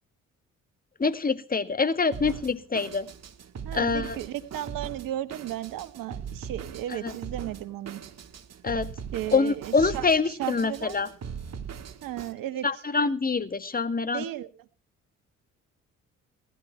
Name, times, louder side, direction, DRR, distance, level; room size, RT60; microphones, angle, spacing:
voice 1, 1.0-3.1 3.7-4.2 7.0-7.1 8.6-8.9 9.3-11.1 12.6-14.2, left 4 dB, 20° left, 11 dB, 1.8 m, -25 dB
Drum kit, 2.1-12.3, right 7 dB, 40° right, 1.8 m, -40 dB
voice 2, 3.6-8.0 9.1-11.0 12.0-12.7 14.1-14.5, right 13 dB, 55° right, 12 dB, 1.6 m, -35 dB
20.0 x 12.0 x 4.5 m, 0.38 s
figure-of-eight pair, 45°, 40 cm